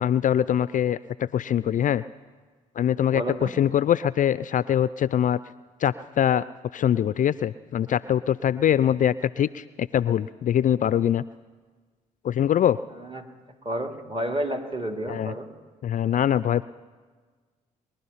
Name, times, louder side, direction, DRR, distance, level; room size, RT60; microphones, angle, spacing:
voice 1, 0.0-2.0 2.8-5.4 5.8-6.4 6.7-11.2 12.2-12.8 15.1-15.3 15.8-16.6, left 10 dB, 45° left, 17 dB, 0.4 m, -23 dB
voice 2, 3.1-3.5 13.0-13.3 13.6-15.5, right 1 dB, 30° right, 4 dB, 2.4 m, -30 dB
21.5 x 12.0 x 5.6 m, 1.5 s
hypercardioid pair, 50°, 19 cm